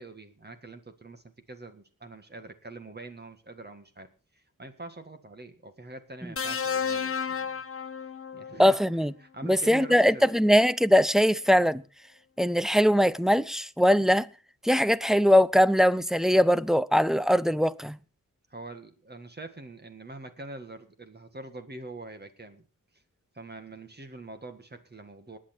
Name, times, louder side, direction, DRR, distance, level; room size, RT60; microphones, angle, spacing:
voice 1, 0.0-7.5 8.3-8.8 9.2-10.4 18.5-22.6 23.3-25.4, right 2 dB, 30° right, 1.8 m, -44 dB
sound 1, 6.4-8.6 9.9-10.1, left 6 dB, 40° left, 1.1 m, -32 dB
voice 2, 8.6-9.1 9.4-11.8 12.4-14.3 14.6-18.0, equal, ahead, 0.6 m, -21 dB
20.0 x 9.1 x 4.4 m
cardioid pair, 70°, 33 cm